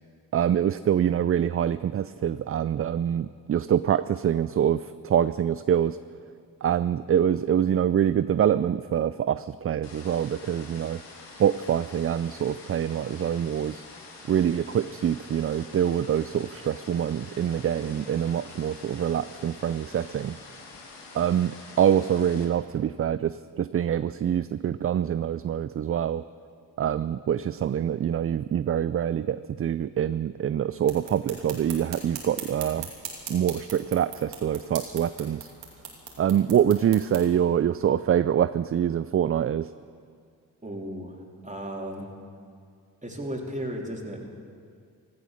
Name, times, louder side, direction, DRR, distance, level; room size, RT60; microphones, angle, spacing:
voice 1, 0.3-6.0 6.6-11.0 11.4-13.8 14.3-20.4 21.1-26.2 26.8-32.9 33.3-35.5 36.2-39.7, right 9 dB, 35° right, 14 dB, 0.4 m, -25 dB
sound 1, 9.8-22.5, left 3 dB, 80° left, 2.6 m, -46 dB
sound 2, 30.8-37.2, right 7 dB, 80° right, 2.7 m, -41 dB
voice 2, 40.6-42.1 43.0-44.2, equal, 15° right, 0 dB, 3.5 m, -35 dB
16.0 x 13.5 x 6.6 m, 2.2 s
supercardioid pair, 50°, 42 cm